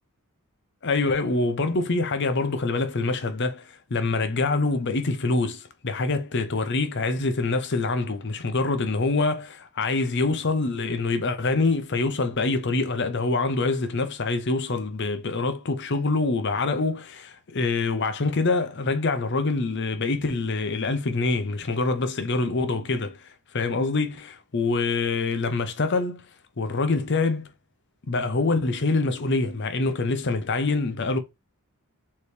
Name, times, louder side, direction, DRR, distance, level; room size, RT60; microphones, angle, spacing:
voice 1, 0.8-26.3 26.6-27.5 28.1-31.2, left 3 dB, 50° left, 0.7 m, -25 dB
4.3 x 3.0 x 3.3 m
head